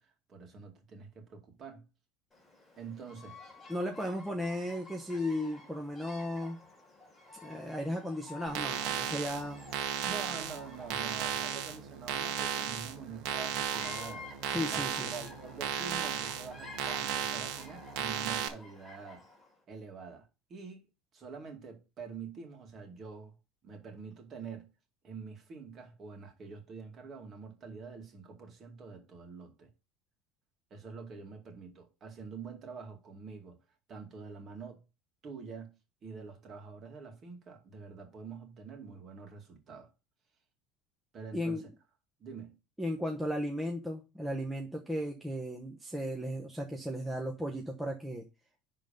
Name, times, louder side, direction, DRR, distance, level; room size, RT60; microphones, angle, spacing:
voice 1, 0.0-1.9 2.8-3.4 10.0-14.3 14.7-19.2 19.7-20.9 21.1-23.3 23.6-24.7 25.0-29.7 30.7-33.6 33.9-34.8 35.2-35.8 36.0-39.9 41.1-41.7 42.2-42.6, right 5 dB, 30° right, 2.3 m, -46 dB
Bird vocalization bird call bird song, 2.3-19.6, left 3 dB, 15° left, 4.0 m, -52 dB
voice 2, 3.7-6.6 7.4-9.7 14.5-15.2 41.3-41.6 42.8-48.2, equal, 5° right, 1.0 m, -35 dB
sound 1, 8.5-18.5, right 9 dB, 65° right, 1.7 m, -35 dB
11.0 x 3.8 x 5.3 m
cardioid pair, 155°, 0 cm